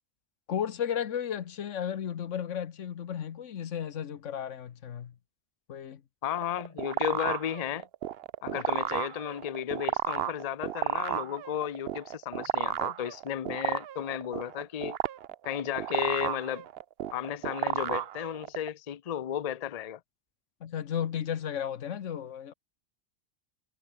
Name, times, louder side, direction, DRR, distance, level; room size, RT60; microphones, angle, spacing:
voice 1, 0.5-5.2 5.7-6.0 8.5-8.7 20.6-22.5, left 9 dB, 90° left, 1.3 m, -34 dB
voice 2, 6.2-7.9 8.4-15.0 15.4-16.7 17.1-20.0, left 10 dB, 45° left, 0.6 m, -34 dB
sound 1, 6.3-18.7, right 11 dB, 60° right, 0.8 m, -32 dB
omnidirectional pair, 1.2 m